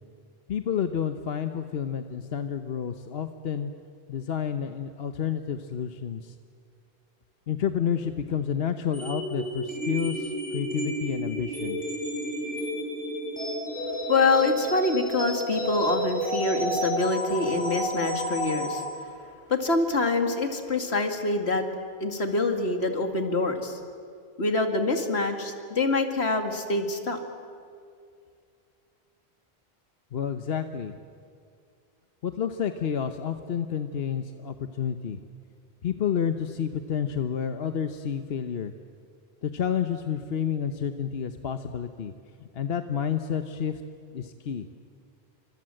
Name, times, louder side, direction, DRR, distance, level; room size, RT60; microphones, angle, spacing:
voice 1, 0.5-3.7 4.1-6.3 7.5-11.8 30.1-31.0 32.2-35.2 35.8-38.7 39.4-42.1 42.5-43.8 44.1-44.7, left 8 dB, 70° left, 8 dB, 1.1 m, -30 dB
sound 1, 8.9-18.8, equal, 10° left, 7.2 m, -31 dB
voice 2, 14.1-18.8 19.5-21.6 22.0-23.8 24.4-27.2, left 3 dB, 90° left, 5 dB, 2.5 m, -25 dB
29.5 x 25.5 x 7.7 m, 2.3 s
omnidirectional pair, 1.1 m